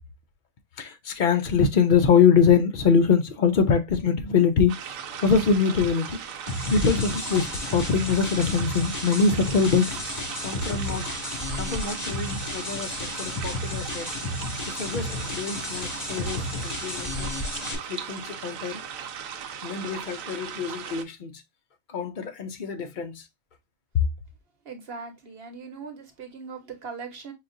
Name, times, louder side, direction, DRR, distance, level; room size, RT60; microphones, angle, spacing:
voice 1, 0.8-4.7 5.2-6.2 6.7-10.0 10.4-11.0 11.5-14.1 14.6-17.3 17.9-18.8 19.6-21.4 21.9-23.2, left 6 dB, 65° left, 0.5 m, -24 dB
sound 1, 4.7-21.0, right 7 dB, 75° right, 1.1 m, -38 dB
sound 2, 6.5-17.8, left 1 dB, 20° left, 1.6 m, -32 dB
voice 2, 24.6-27.3, right 5 dB, 45° right, 1.2 m, -39 dB
5.7 x 2.4 x 2.4 m
omnidirectional pair, 1.5 m